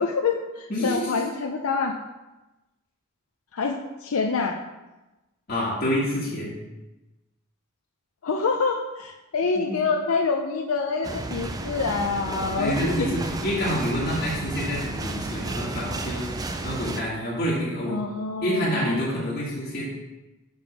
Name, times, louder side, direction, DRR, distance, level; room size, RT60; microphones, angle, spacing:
voice 1, 0.0-1.9 3.5-4.6 8.2-12.8 17.9-19.0, left 4 dB, 90° left, 2 dB, 0.5 m, -26 dB
voice 2, 0.7-1.2 5.5-6.5 9.7-9.8 12.6-18.0 18.4-20.0, equal, 50° left, -7 dB, 1.6 m, -27 dB
sound 1, 11.0-17.0, right 2 dB, 20° right, 0.4 m, -32 dB
6.7 x 3.6 x 5.9 m, 1.0 s
head